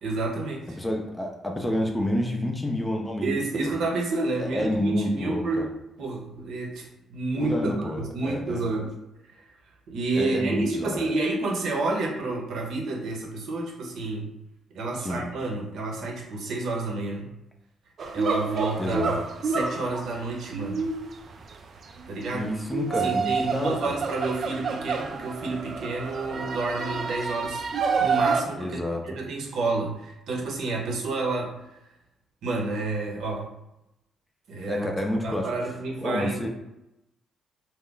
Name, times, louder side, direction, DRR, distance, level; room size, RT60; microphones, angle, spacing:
voice 1, 0.0-0.8 3.2-5.7 6.0-8.9 9.3-9.5 9.9-14.3 14.7-17.3 18.1-19.2 19.4-20.9 22.1-22.5 22.9-28.8 29.0-31.8 32.4-33.5 34.5-34.9 35.2-36.5, right 2 dB, 75° right, -1 dB, 0.7 m, -30 dB
voice 2, 0.8-3.8 4.4-5.7 7.5-8.6 10.1-11.1 15.0-15.2 18.8-19.2 22.3-23.9 28.6-29.0 34.7-35.5 36.0-36.5, left 1 dB, 15° left, 2 dB, 0.5 m, -29 dB
sound 1, 18.0-28.4, right 5 dB, 55° right, 0.3 m, -29 dB
2.4 x 2.1 x 3.8 m, 0.89 s
cardioid pair, 90°, 0 cm